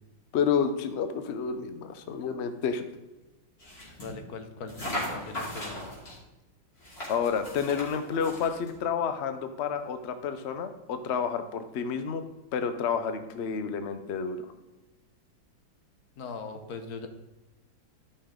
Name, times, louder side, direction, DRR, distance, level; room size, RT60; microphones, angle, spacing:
voice 1, 0.3-2.8 7.1-12.2 12.5-14.5, left 6 dB, 85° left, 9 dB, 0.5 m, -30 dB
sound 1, 3.6-4.1 4.7-6.2 6.8-8.7, left 1 dB, 30° left, 3.1 m, -38 dB
voice 2, 4.0-5.8 16.2-17.1, left 4 dB, 60° left, 7 dB, 1.3 m, -40 dB
13.0 x 5.5 x 3.7 m, 1.0 s
omnidirectional pair, 2.1 m